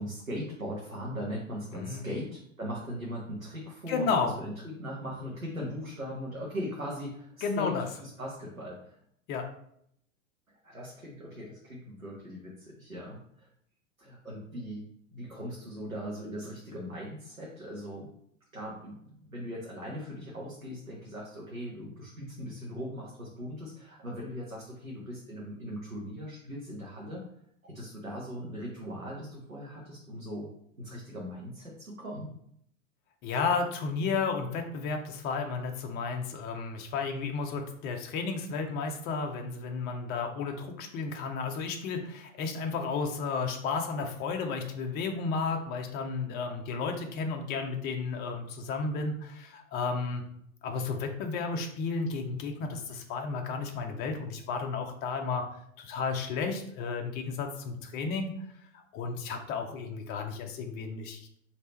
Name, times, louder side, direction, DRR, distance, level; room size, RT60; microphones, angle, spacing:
voice 1, 0.0-9.0 10.6-13.5 14.0-14.9 15.1-18.1 18.5-27.2 27.6-30.5 30.8-32.3, equal, 90° right, -4 dB, 1.0 m, -39 dB
voice 2, 1.7-2.1 3.9-4.4 7.4-7.9 9.3-9.4 33.2-50.2 50.6-55.4 55.8-58.3 58.9-61.3, left 4 dB, 25° left, 4 dB, 0.6 m, -32 dB
3.3 x 2.8 x 4.2 m, 0.71 s
figure-of-eight pair, 90°, 40 cm